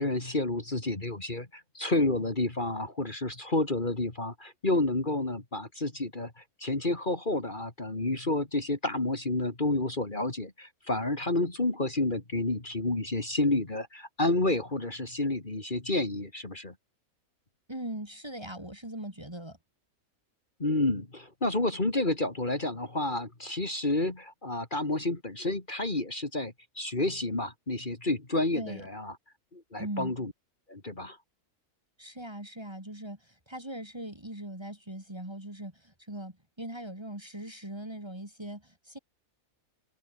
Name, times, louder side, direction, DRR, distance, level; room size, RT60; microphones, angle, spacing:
voice 1, 0.0-16.7 20.6-29.1 29.5-30.3 30.7-31.2, left 2 dB, 35° left, 2.9 m, -30 dB
voice 2, 17.7-19.6 28.5-28.8 29.8-30.1 32.0-39.0, right 1 dB, 15° right, 3.3 m, -40 dB
omnidirectional pair, 1.5 m